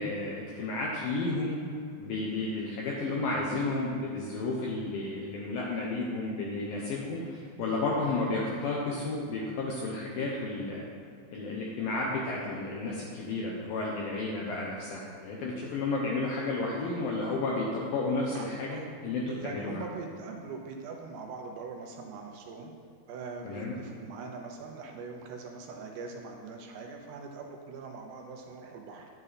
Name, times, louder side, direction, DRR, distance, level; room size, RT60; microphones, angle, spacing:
voice 1, 0.0-1.6 2.0-10.8 11.3-19.8 23.5-23.7, left 2 dB, 75° left, -3 dB, 2.2 m, -32 dB
voice 2, 18.4-18.8 19.3-22.7 23.1-29.1, right 4 dB, 75° right, 2 dB, 2.7 m, -42 dB
10.5 x 8.9 x 4.1 m, 2.4 s
omnidirectional pair, 5.3 m